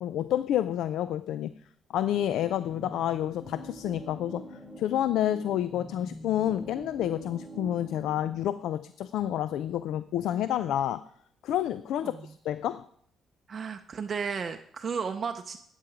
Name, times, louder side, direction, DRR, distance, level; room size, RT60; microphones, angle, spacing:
voice 1, 0.0-1.5 1.9-11.1 11.4-12.9, left 11 dB, 80° left, 14 dB, 0.3 m, -29 dB
sound 1, 2.1-8.4, right 1 dB, ahead, 1.6 m, -45 dB
voice 2, 13.5-15.6, right 6 dB, 35° right, 6 dB, 0.5 m, -33 dB
10.5 x 8.3 x 4.9 m, 0.65 s
cardioid pair, 145°, 0 cm